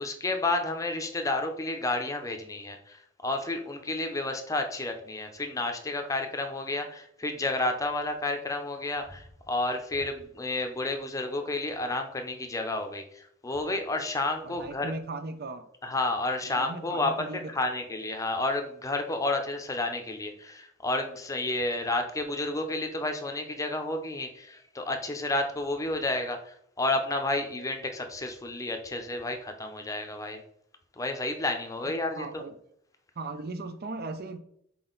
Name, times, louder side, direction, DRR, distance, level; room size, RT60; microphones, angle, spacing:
voice 1, 0.0-14.9 15.8-30.4 31.0-32.4, left 2 dB, 15° left, 0.7 m, -31 dB
voice 2, 14.4-15.7 16.4-17.5 31.8-32.5 33.2-34.4, right 3 dB, 50° right, 0.6 m, -38 dB
6.1 x 4.4 x 3.9 m
head